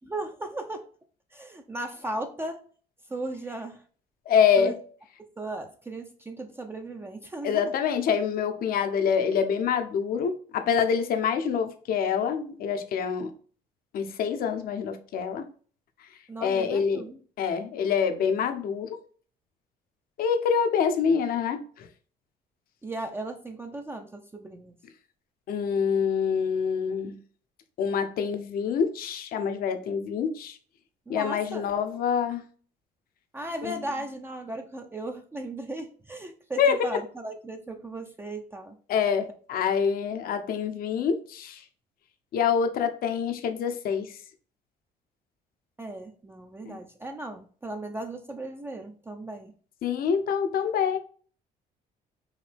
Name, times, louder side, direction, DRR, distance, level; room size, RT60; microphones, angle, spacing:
voice 1, 0.0-0.9 1.3-2.7 3.1-3.8 4.6-4.7 5.4-7.7 16.3-17.2 22.8-24.8 31.1-31.7 33.3-38.8 45.8-49.5, right 2 dB, 15° right, 4 dB, 0.5 m, -36 dB
voice 2, 4.3-4.7 7.4-13.3 13.9-15.5 16.4-17.0 17.4-19.0 20.2-21.9 25.5-27.2 27.8-30.6 31.1-32.4 33.6-33.7 36.6-37.0 38.9-41.6 42.3-44.2 46.6-46.8 49.8-51.0, left 7 dB, 60° left, 7 dB, 0.7 m, -26 dB
4.7 x 2.7 x 3.4 m, 0.43 s
cardioid pair, 110°, 17 cm